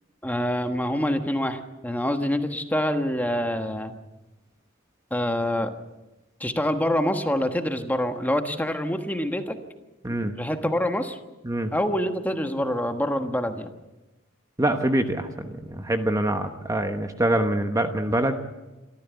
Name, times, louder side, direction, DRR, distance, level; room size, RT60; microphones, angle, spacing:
voice 1, 0.2-3.9 5.1-5.7 6.4-9.6 10.4-11.2 11.7-13.7, left 1 dB, 10° left, 6 dB, 1.3 m, -26 dB
voice 2, 14.6-18.3, right 1 dB, 15° right, 6 dB, 1.1 m, -25 dB
24.5 x 14.0 x 8.3 m, 1.1 s
head